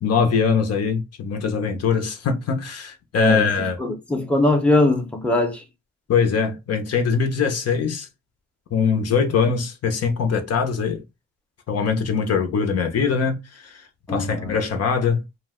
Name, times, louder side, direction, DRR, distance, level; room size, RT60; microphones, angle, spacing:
voice 1, 0.0-3.8 6.1-8.1 8.7-11.0 11.7-15.2, left 5 dB, 55° left, 0.7 m, -22 dB
voice 2, 3.8-5.6 14.1-14.6, left 2 dB, 5° left, 0.7 m, -21 dB
2.4 x 2.1 x 3.5 m
cardioid pair, 90°, 30 cm